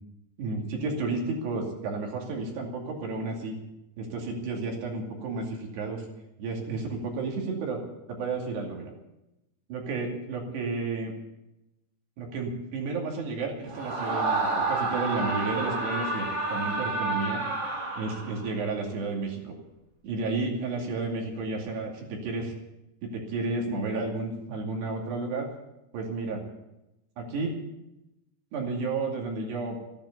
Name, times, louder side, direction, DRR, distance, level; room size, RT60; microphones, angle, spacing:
voice 1, 0.4-3.6 4.0-6.1 6.4-7.8 8.1-8.9 9.7-11.1 12.2-17.4 18.0-19.5 20.0-22.5 23.0-25.5 25.9-26.4 27.2-27.6 28.5-29.8, right 3 dB, 70° right, 0 dB, 4.6 m, -32 dB
Screaming, 13.7-18.6, right 3 dB, 35° right, 2.3 m, -29 dB
15.0 x 10.5 x 8.4 m, 0.93 s
omnidirectional pair, 5.1 m